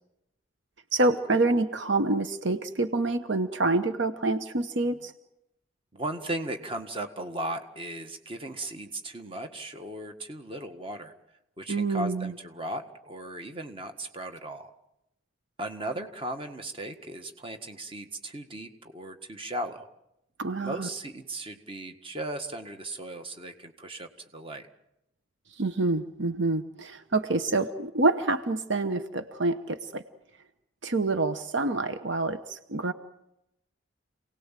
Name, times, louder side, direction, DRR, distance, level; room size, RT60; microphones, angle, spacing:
voice 1, 0.9-5.1 11.7-12.3 20.4-20.9 25.6-30.0 30.8-32.9, right 2 dB, 65° right, 10 dB, 1.0 m, -27 dB
voice 2, 5.9-11.1 11.6-14.7 15.6-19.9 20.6-24.7, right 1 dB, 25° right, 6 dB, 1.7 m, -37 dB
28.0 x 18.5 x 7.5 m, 0.85 s
head